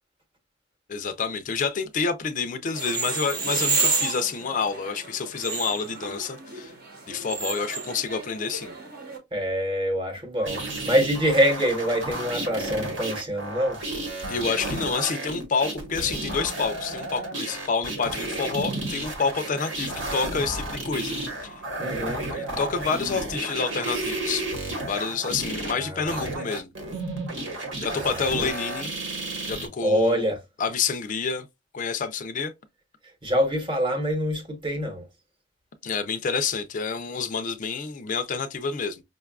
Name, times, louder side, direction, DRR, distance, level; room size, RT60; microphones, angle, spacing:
voice 1, 0.9-6.7 7.1-8.7 14.3-21.6 22.3-24.5 24.9-26.7 27.8-28.9 29.5-30.3 30.6-31.5 31.7-32.5 35.8-39.0, left 5 dB, 40° left, 0.4 m, -28 dB
sound 1, 2.7-9.2, right 4 dB, 55° right, 1.0 m, -30 dB
voice 2, 9.3-13.8 21.8-22.3 25.7-26.3 27.9-28.5 29.8-30.4 33.0-35.1, equal, 25° right, 1.0 m, -25 dB
sound 2, 10.4-29.7, right 2 dB, 75° right, 1.2 m, -32 dB
5.1 x 2.3 x 2.3 m
head